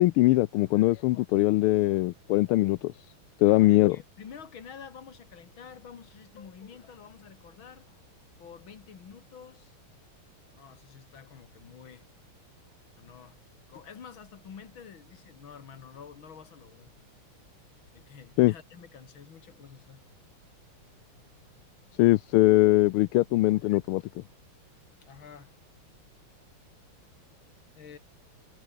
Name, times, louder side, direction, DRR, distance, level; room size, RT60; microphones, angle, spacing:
voice 1, 0.0-2.9 3.4-4.0 18.4-18.5 22.0-24.0, left 18 dB, 80° left, 1.5 m, -21 dB
voice 2, 3.5-8.0 8.4-9.7 10.5-12.0 13.0-13.4 13.7-16.9 17.9-20.0 25.0-25.5 27.8-28.0, left 7 dB, 65° left, 2.8 m, -48 dB
omnidirectional pair, 2.4 m